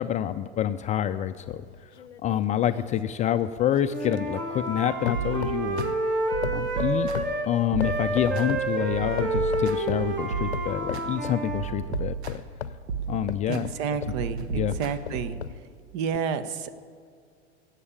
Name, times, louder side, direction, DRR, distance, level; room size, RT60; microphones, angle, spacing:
voice 1, 0.0-1.6 2.2-5.9 6.5-7.1 7.5-12.4 13.1-13.7 14.5-14.8, left 11 dB, 25° left, 10 dB, 0.3 m, -27 dB
sound 1, 1.4-4.8 5.1-6.1 6.4-8.7 9.2-10.1 10.5-11.4 11.9-14.2 14.7-15.6 16.1-16.2, left 8 dB, 85° left, 0.6 m, -37 dB
Wind instrument woodwind instrument, 3.9-7.5 7.8-11.7, right 2 dB, 35° right, 2.4 m, -29 dB
sound 2, 5.1-5.9 6.3-7.4 7.7-8.5 8.9-11.0 11.5-12.5 12.9-13.6 14.1-15.5, right 6 dB, 75° right, 1.3 m, -34 dB
voice 2, 13.5-15.4 15.9-16.7, right 6 dB, 50° right, 12 dB, 1.0 m, -30 dB
17.5 x 7.4 x 8.7 m, 2.1 s
hypercardioid pair, 85°, 33 cm